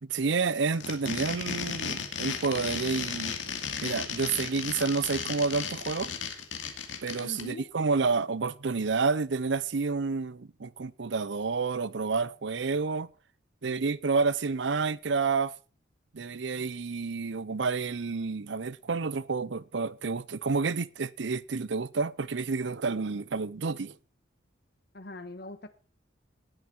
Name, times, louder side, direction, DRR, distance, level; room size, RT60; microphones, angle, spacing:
voice 1, 0.0-3.3 3.8-6.1 7.0-13.1 13.6-15.5 16.1-23.9, right 4 dB, 65° right, 0.6 m, -29 dB
sound 1, 0.7-7.4, left 6 dB, 70° left, 2.5 m, -34 dB
voice 2, 7.2-7.7 24.9-25.7, left 2 dB, 55° left, 1.4 m, -42 dB
18.0 x 9.2 x 4.5 m
head